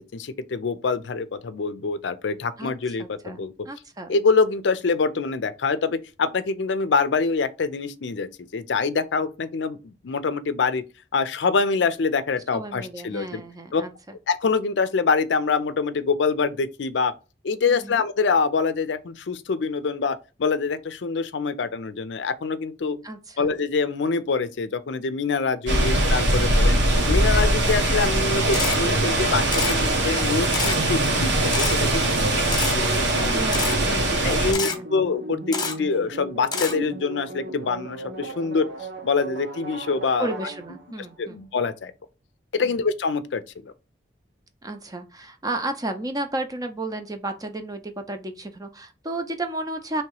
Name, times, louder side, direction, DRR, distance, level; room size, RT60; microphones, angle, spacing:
voice 1, 0.1-3.5 4.1-10.8 11.1-13.4 13.7-13.8 14.3-17.1 17.4-23.0 23.4-26.8 27.1-33.4 34.2-38.7 39.0-40.3 41.2-41.9 42.5-43.7, left 4 dB, 70° left, 0.5 m, -25 dB
voice 2, 2.6-4.1 12.5-14.2 17.7-18.0 23.0-23.5 26.3-26.8 32.1-32.5 33.1-34.9 40.2-41.4 42.6-42.8 44.6-50.0, right 2 dB, 20° right, 0.6 m, -33 dB
sound 1, 25.7-34.5, right 1 dB, 85° right, 1.2 m, -21 dB
Camera, 28.5-28.8 29.5-29.8 30.5-30.8 31.5-31.8 32.5-32.7 33.5-33.8 34.5-34.8 35.5-35.7 36.5-36.7, left 5 dB, 25° left, 1.0 m, -26 dB
sound 2, 28.6-41.1, right 2 dB, 70° right, 0.8 m, -37 dB
3.2 x 2.9 x 4.5 m
head